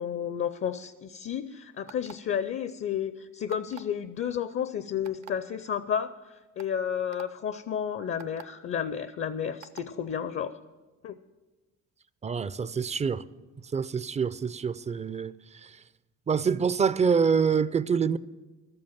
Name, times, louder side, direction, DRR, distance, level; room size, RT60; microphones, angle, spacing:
voice 1, 0.0-10.5 11.0-11.2, left 8 dB, 45° left, 0.5 m, -32 dB
sound 1, 1.9-2.3 3.5-3.9 5.1-5.3 6.1-6.2 6.6-6.7 7.1-7.3 8.2-8.4 9.6-9.9, right 11 dB, 65° right, 0.7 m, -46 dB
voice 2, 12.2-13.2 13.7-15.8 16.3-18.2, right 6 dB, 25° right, 0.4 m, -26 dB
12.0 x 7.8 x 7.3 m
cardioid pair, 90°, 30 cm